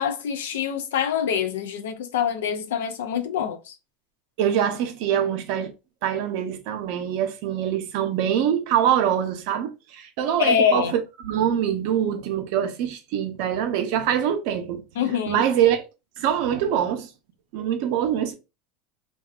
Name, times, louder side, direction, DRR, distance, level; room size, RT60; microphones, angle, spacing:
voice 1, 0.0-3.7 10.4-10.9 15.0-15.4, left 8 dB, 85° left, 0.4 m, -25 dB
voice 2, 4.4-5.7 6.0-14.8 15.3-15.8 16.2-17.1 17.5-18.3, right 9 dB, 65° right, 0.6 m, -24 dB
2.6 x 2.2 x 2.4 m
hypercardioid pair, 95°, 0 cm